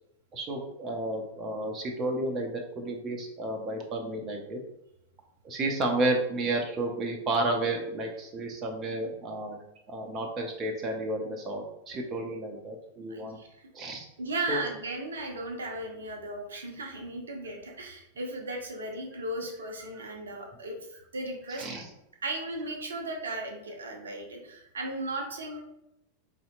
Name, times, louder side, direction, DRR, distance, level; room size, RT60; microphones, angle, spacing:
voice 1, 0.3-4.6 5.4-9.6 9.9-13.4 13.7-14.1 14.5-14.6 19.9-20.0 21.5-21.9, right 2 dB, 30° right, 2 dB, 0.5 m, -32 dB
voice 2, 13.1-13.7 14.2-20.8 21.1-21.6 22.2-25.6, right 2 dB, 70° right, 2 dB, 0.6 m, -36 dB
4.9 x 2.7 x 2.3 m, 0.83 s
figure-of-eight pair, 90°, 0 cm